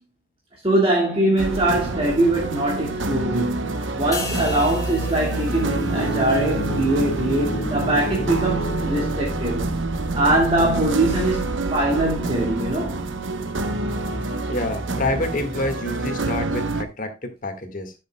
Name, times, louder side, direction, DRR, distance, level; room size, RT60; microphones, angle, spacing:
voice 1, 0.6-9.7 10.1-13.1, right 1 dB, 30° right, 1.9 m, -22 dB
sound 1, 1.4-16.8, right 2 dB, 70° right, 1.0 m, -27 dB
sound 2, 4.1-7.6 8.0-8.3, left 3 dB, 15° left, 4.4 m, -38 dB
sound 3, 5.1-10.0, equal, 65° left, 1.8 m, -30 dB
voice 2, 14.5-17.9, left 2 dB, 40° left, 1.8 m, -27 dB
13.0 x 6.6 x 2.3 m
head